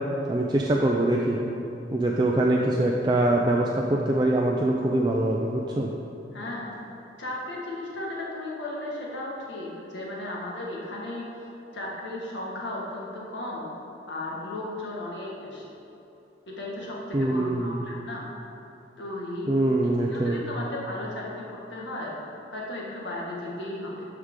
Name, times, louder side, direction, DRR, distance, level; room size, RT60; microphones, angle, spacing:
voice 1, 0.3-1.4 1.9-5.9 17.1-17.8 19.5-20.4, right 1 dB, 25° right, -1 dB, 0.4 m, -23 dB
voice 2, 6.3-6.8 7.2-11.3 11.7-13.7 14.1-15.7 16.5-18.2 19.0-19.5 20.1-22.1 22.5-24.1, left 1 dB, 85° left, -4 dB, 1.7 m, -35 dB
13.0 x 4.8 x 3.7 m, 3.0 s
head